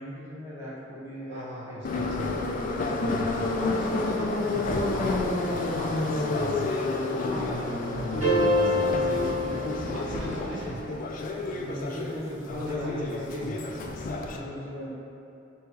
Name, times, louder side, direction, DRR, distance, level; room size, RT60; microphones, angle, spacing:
voice 1, 0.0-2.3 7.6-8.1 9.0-10.2 10.5-10.7 11.5-13.5 14.2-14.9, equal, 15° right, -8 dB, 0.8 m, -39 dB
voice 2, 1.3-2.4 2.8-6.7 7.2-8.8 9.8-10.8 12.5-13.6, right 2 dB, 55° right, -3 dB, 0.4 m, -37 dB
Subway metro underground, 1.8-14.4, left 3 dB, 40° left, 0.3 m, -30 dB
sound 1, 8.2-10.5, left 1 dB, 90° right, 1.2 m, -26 dB
3.9 x 2.3 x 4.5 m, 2.8 s
head